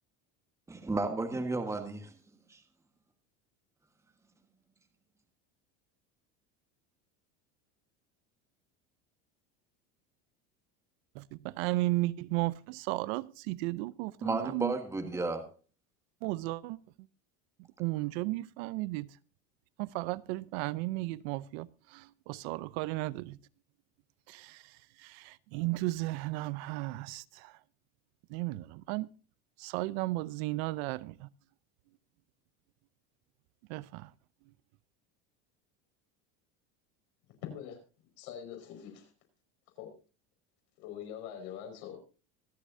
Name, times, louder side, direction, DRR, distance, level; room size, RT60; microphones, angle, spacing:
voice 1, 0.7-2.1 2.5-2.6 14.2-15.5, right 3 dB, 10° right, 1.5 m, -33 dB
voice 2, 11.1-14.8 16.2-16.8 17.8-19.1 19.8-23.4 24.3-27.6 28.3-29.1 29.6-31.3 33.7-34.1, right 19 dB, 70° right, 0.7 m, -35 dB
voice 3, 37.4-37.8 38.2-39.1 39.8-39.9 40.8-42.0, left 9 dB, 70° left, 5.3 m, -43 dB
24.5 x 8.2 x 2.7 m
supercardioid pair, 140°, 33 cm